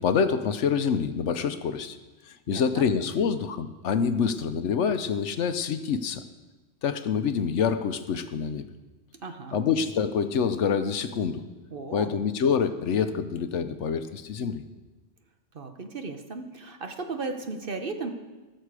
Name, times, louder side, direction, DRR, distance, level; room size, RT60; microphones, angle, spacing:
voice 1, 0.0-2.0 2.3-6.2 6.8-8.7 9.5-11.4 11.9-14.6, left 6 dB, 70° left, 10 dB, 1.0 m, -26 dB
voice 2, 2.5-2.8 9.2-9.6 11.7-12.1 15.5-18.1, right 3 dB, 50° right, 6 dB, 1.1 m, -35 dB
20.0 x 6.7 x 4.8 m, 1.2 s
omnidirectional pair, 1.3 m